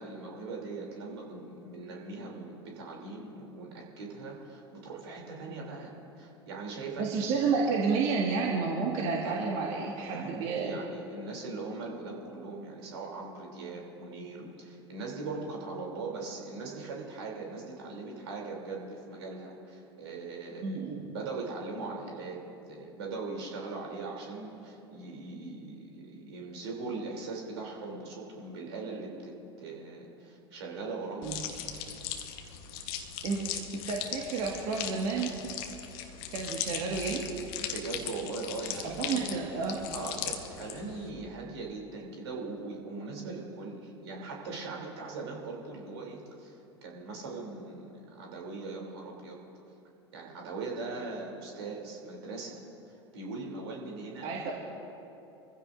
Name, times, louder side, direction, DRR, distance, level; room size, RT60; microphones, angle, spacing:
voice 1, 0.0-7.1 10.0-20.9 21.1-31.5 37.6-39.2 39.9-49.4 50.1-52.6 52.9-54.4, right 3 dB, 70° right, -1 dB, 3.2 m, -40 dB
voice 2, 7.0-10.7 20.6-21.0 31.2-31.4 33.2-33.4 33.7-35.6 36.3-37.2 39.0-39.8 54.2-54.5, right 5 dB, 50° right, -2 dB, 1.9 m, -30 dB
sound 1, 31.2-41.1, left 9 dB, 55° left, 1.2 m, -39 dB
24.5 x 15.0 x 2.6 m, 2.9 s
figure-of-eight pair, 80°, 14 cm